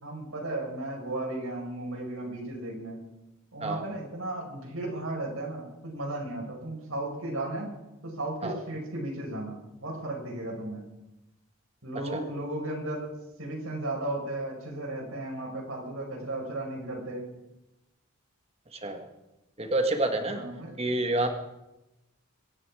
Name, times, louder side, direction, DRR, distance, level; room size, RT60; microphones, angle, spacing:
voice 1, 0.0-3.0 3.5-7.7 8.0-10.8 11.8-17.3 20.3-20.7, right 1 dB, 75° right, -1 dB, 5.2 m, -35 dB
voice 2, 18.7-19.1 19.6-20.4 20.8-21.3, right 2 dB, 25° right, 5 dB, 1.7 m, -28 dB
24.0 x 10.5 x 4.9 m, 0.96 s
head